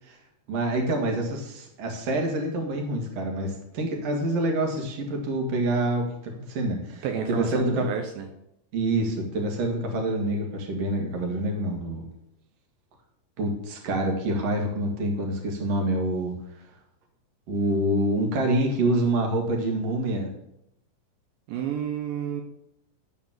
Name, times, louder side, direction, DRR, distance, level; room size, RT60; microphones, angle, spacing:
voice 1, 0.5-7.9 8.7-12.1 13.4-16.3 17.5-20.3, right 1 dB, 50° right, 2 dB, 2.4 m, -26 dB
voice 2, 7.0-8.3 21.5-22.4, right 8 dB, 80° right, 4 dB, 2.5 m, -30 dB
11.5 x 4.2 x 7.4 m, 0.80 s
omnidirectional pair, 4.4 m